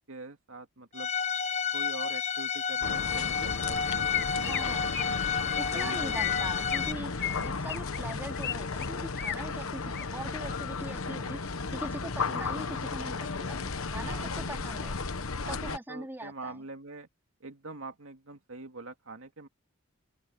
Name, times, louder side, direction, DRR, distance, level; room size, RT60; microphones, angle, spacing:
voice 1, 0.1-1.1 1.7-5.1 5.7-6.3 7.4-7.5 14.0-14.6 15.4-17.1 17.4-19.5, right 3 dB, 65° right, 2.5 m, -44 dB
Bowed string instrument, 1.0-6.9, left 7 dB, 30° left, 0.9 m, -31 dB
sound 1, 2.8-15.8, left 4 dB, 70° left, 1.2 m, -34 dB
Chirp tweet, 4.1-4.6 4.9-5.1 5.5-5.8 6.1-6.9 7.2-8.5 8.8-9.4 9.8-10.1 10.5-10.8, left 11 dB, 50° left, 1.8 m, -35 dB
voice 2, 4.4-4.9 5.4-15.0 15.5-16.6, right 1 dB, 10° right, 3.9 m, -42 dB
open air
head